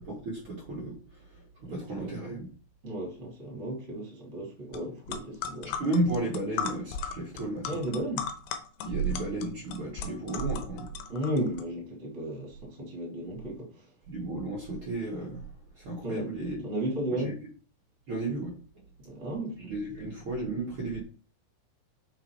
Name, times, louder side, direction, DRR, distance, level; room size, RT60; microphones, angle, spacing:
voice 1, 0.0-2.5 5.8-7.8 8.8-10.9 14.1-15.4 15.8-16.6 17.1-17.3 18.1-18.5 19.7-21.0, right 2 dB, 65° right, 1.3 m, -33 dB
voice 2, 1.6-2.1 2.8-5.8 7.6-8.3 11.1-13.9 16.0-16.3 16.6-17.3 19.0-19.7, right 1 dB, 25° right, 1.8 m, -34 dB
sound 1, 4.7-4.8 5.1-11.6, left 6 dB, 80° left, 2.5 m, -37 dB
6.6 x 5.4 x 4.5 m
omnidirectional pair, 5.9 m